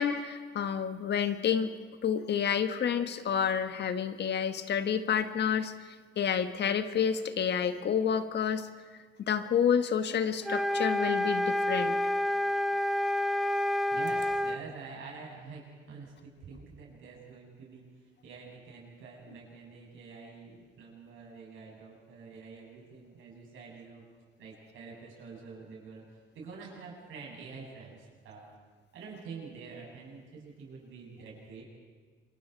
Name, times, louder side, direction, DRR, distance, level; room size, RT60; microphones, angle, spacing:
voice 1, 0.0-1.7 2.0-5.7 6.2-8.7 9.3-12.0, left 7 dB, 60° left, 9 dB, 1.4 m, -29 dB
sound 1, 10.4-14.6, left 1 dB, ahead, 1.0 m, -29 dB
voice 2, 13.9-17.8 18.2-24.0 24.4-28.5 28.9-31.6, right 4 dB, 80° right, -2 dB, 7.6 m, -47 dB
27.0 x 23.5 x 4.7 m, 1.5 s
cardioid pair, 90°, 20 cm